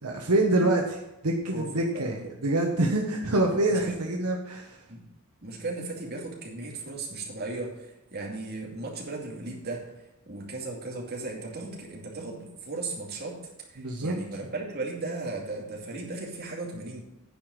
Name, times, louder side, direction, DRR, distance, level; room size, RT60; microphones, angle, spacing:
voice 1, 0.0-4.8 13.8-14.2, right 2 dB, 80° right, 1 dB, 1.2 m, -26 dB
voice 2, 1.9-2.3 3.7-4.1 4.9-5.0 5.4-9.9 10.3-17.0, right 3 dB, 45° right, -1 dB, 2.4 m, -36 dB
9.8 x 5.0 x 7.7 m, 0.96 s
head